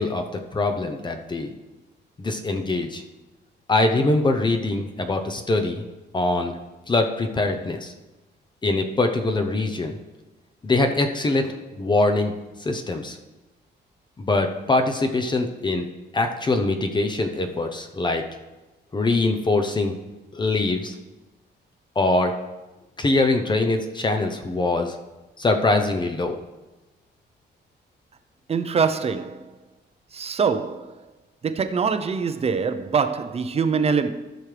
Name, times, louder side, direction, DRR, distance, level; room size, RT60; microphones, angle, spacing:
voice 1, 0.0-1.5 2.2-3.0 3.7-5.8 6.1-6.6 6.9-7.9 8.6-10.0 10.6-12.3 12.6-13.2 14.2-18.2 18.9-20.0 20.3-21.0 22.0-22.4 23.0-24.9 25.4-26.4, left 2 dB, 25° left, 0.7 m, -23 dB
voice 2, 28.5-29.4 30.1-30.9 31.4-34.1, right 5 dB, 35° right, 0.6 m, -23 dB
14.0 x 6.3 x 3.4 m
cardioid pair, 135°, 19 cm